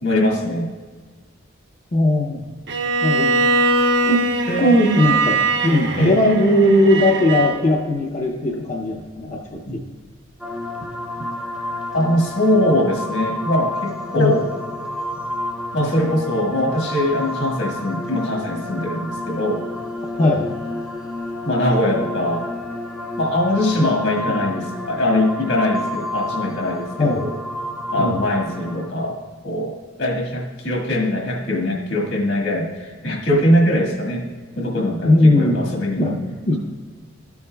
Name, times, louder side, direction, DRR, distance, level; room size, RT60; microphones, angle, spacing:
voice 1, 0.0-0.7 4.5-4.7 6.0-6.2 9.7-9.8 11.9-14.5 15.7-19.6 21.4-22.5 23.2-27.3 27.9-29.2 29.4-34.2 34.5-36.2, left 1 dB, 70° left, -1 dB, 1.6 m, -21 dB
voice 2, 1.9-2.4 3.0-3.4 4.1-4.2 4.6-9.9 14.2-14.4 20.2-20.5 24.3-24.4 27.0-27.3 28.0-28.2 35.0-35.7 36.0-36.2 36.5-36.6, left 1 dB, 35° left, -1 dB, 0.6 m, -18 dB
Bowed string instrument, 2.7-7.6, right 2 dB, 65° right, 0.9 m, -21 dB
sound 1, 10.4-28.9, left 1 dB, 5° right, 0.6 m, -30 dB
13.5 x 7.0 x 2.3 m, 1.5 s
head